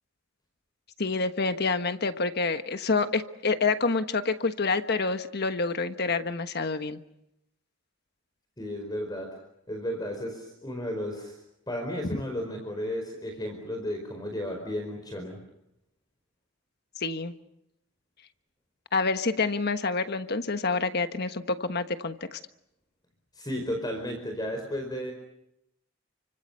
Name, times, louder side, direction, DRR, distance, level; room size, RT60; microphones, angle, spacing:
voice 1, 1.0-7.0 17.0-17.3 18.9-22.4, left 4 dB, 55° left, 9 dB, 1.3 m, -27 dB
voice 2, 8.6-9.3 9.7-11.4 11.7-15.4 23.3-25.1, equal, 20° left, 4 dB, 4.7 m, -33 dB
30.0 x 25.0 x 6.7 m, 0.81 s
head